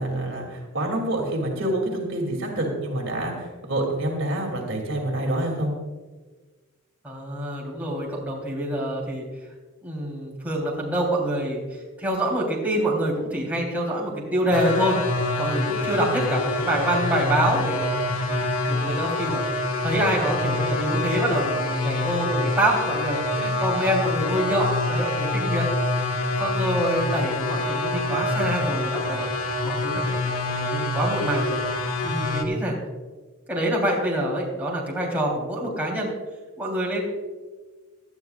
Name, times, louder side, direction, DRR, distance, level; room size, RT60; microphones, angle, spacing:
voice 1, 0.0-5.7, right 1 dB, 60° right, 0 dB, 2.6 m, -27 dB
voice 2, 7.0-9.2 9.8-11.6 12.0-15.0 15.4-17.9 18.3-19.4 19.8-25.7 26.4-29.3 29.6-31.6 32.0-32.8 33.5-36.1 36.6-37.0, right 1 dB, 10° right, -4 dB, 3.3 m, -26 dB
sound 1, 14.5-32.4, left 2 dB, 85° left, 1.6 m, -26 dB
18.5 x 12.0 x 2.4 m, 1.3 s
head